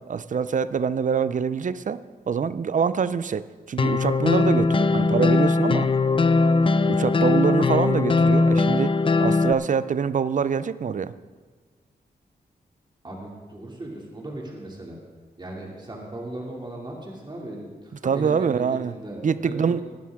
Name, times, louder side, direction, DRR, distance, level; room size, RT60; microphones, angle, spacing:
voice 1, 0.0-2.0 2.3-5.9 6.9-8.9 9.2-11.1 18.0-18.9 19.2-19.8, right 6 dB, 50° right, 15 dB, 0.5 m, -25 dB
sound 1, 3.8-9.5, left 3 dB, 30° left, 0.4 m, -20 dB
voice 2, 13.0-15.0 15.4-19.8, right 1 dB, 25° right, -2 dB, 2.6 m, -37 dB
17.0 x 11.0 x 3.6 m, 1.4 s
cardioid pair, 70°, 17 cm